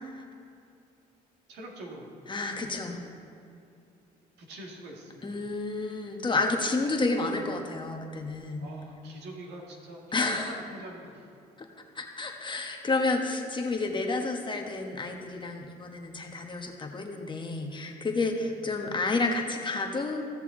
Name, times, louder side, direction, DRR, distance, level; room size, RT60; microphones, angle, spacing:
voice 1, 1.5-2.1 2.9-3.0 4.4-5.4 8.6-11.3 18.3-18.5, right 1 dB, 80° right, 0 dB, 1.8 m, -44 dB
voice 2, 2.3-3.0 5.2-8.7 10.1-10.6 11.9-20.2, left 3 dB, 30° left, 3 dB, 1.2 m, -30 dB
15.5 x 6.8 x 3.8 m, 2.5 s
cardioid pair, 90°, 17 cm